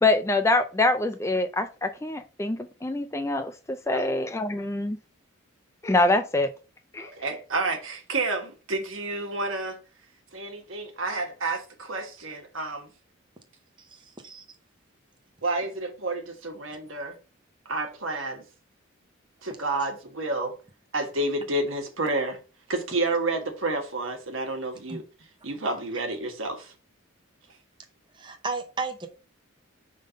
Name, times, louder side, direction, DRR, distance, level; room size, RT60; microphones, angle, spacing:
voice 1, 0.0-5.0 5.8-6.5 6.9-7.1, left 2 dB, 15° left, 0.4 m, -25 dB
voice 2, 7.0-9.8 10.3-12.9 15.4-17.1 17.6-18.4 19.4-20.5 20.9-22.4 22.7-25.0 25.4-26.7, right 2 dB, 75° right, 1.4 m, -30 dB
voice 3, 13.8-14.4 24.9-25.0 28.1-29.1, right 4 dB, 25° right, 0.7 m, -34 dB
5.3 x 3.7 x 5.1 m
head